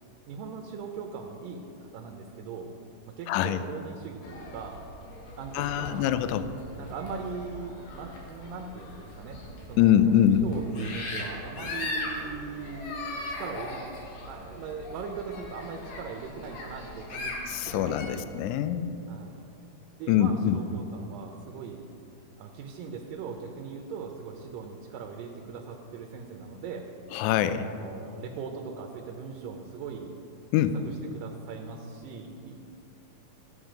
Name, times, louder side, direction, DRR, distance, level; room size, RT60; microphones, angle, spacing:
voice 1, 0.3-2.7 3.1-4.8 5.4-6.2 6.8-9.4 9.7-13.8 14.3-17.4 17.7-18.3 19.1-19.4 20.0-21.9 22.4-26.9 27.7-30.1 30.6-32.8, right 5 dB, 90° right, 2 dB, 2.5 m, -40 dB
voice 2, 3.3-3.6 5.5-6.5 9.8-10.4 17.5-19.0 20.1-20.6 27.1-27.7 30.5-30.7, left 10 dB, 80° left, 12 dB, 1.8 m, -24 dB
sound 1, 4.2-18.1, left 2 dB, 60° left, 2.5 m, -39 dB
13.0 x 8.2 x 5.1 m, 2.7 s
omnidirectional pair, 3.8 m